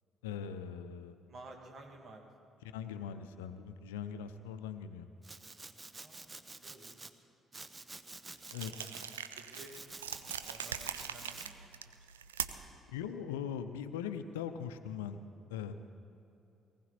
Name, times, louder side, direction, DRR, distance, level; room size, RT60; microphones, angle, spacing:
voice 1, 0.2-1.2 2.7-5.1 8.5-8.9 12.9-15.2 15.5-15.7, left 8 dB, 75° left, 10 dB, 0.6 m, -41 dB
voice 2, 1.3-2.5 6.0-7.1 8.7-9.7 10.4-11.8 12.1-12.2, right 2 dB, 45° right, 2 dB, 2.2 m, -54 dB
Domestic sounds home sounds, 5.2-7.1 7.5-9.2 9.5-11.5, right 3 dB, 25° right, 0.8 m, -49 dB
sound 1, 8.5-12.8, right 9 dB, 80° right, 0.4 m, -42 dB
19.0 x 16.5 x 4.2 m, 2.8 s
figure-of-eight pair, 45°, 0 cm